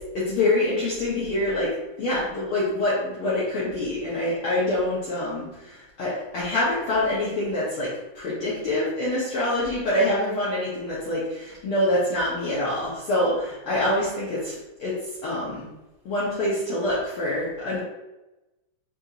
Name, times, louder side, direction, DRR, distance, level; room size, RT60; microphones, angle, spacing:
voice 1, 0.1-1.7 2.0-7.9 8.1-14.9 15.2-15.7 16.0-17.8, left 1 dB, 75° left, -8 dB, 1.2 m, -25 dB
5.1 x 2.4 x 2.8 m, 1.0 s
omnidirectional pair, 3.5 m